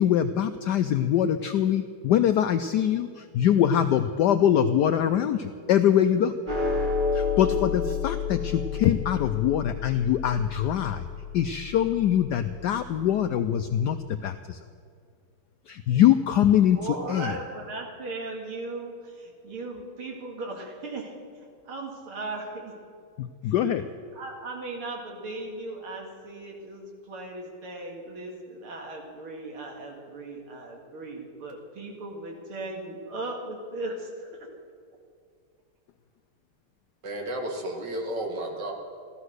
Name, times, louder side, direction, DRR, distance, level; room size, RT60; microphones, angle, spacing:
voice 1, 0.0-6.3 7.1-11.0 11.3-14.6 15.7-17.4 23.2-23.8, left 10 dB, 85° left, 9 dB, 0.9 m, -23 dB
sound 1, 6.5-13.0, left 5 dB, 25° right, 2.1 m, -30 dB
voice 2, 16.8-22.8 23.4-23.5 24.1-34.5, right 2 dB, 75° right, 1 dB, 3.0 m, -37 dB
voice 3, 37.0-38.7, right 1 dB, 55° right, 2 dB, 2.4 m, -32 dB
15.0 x 13.0 x 6.4 m, 2.2 s
omnidirectional pair, 2.4 m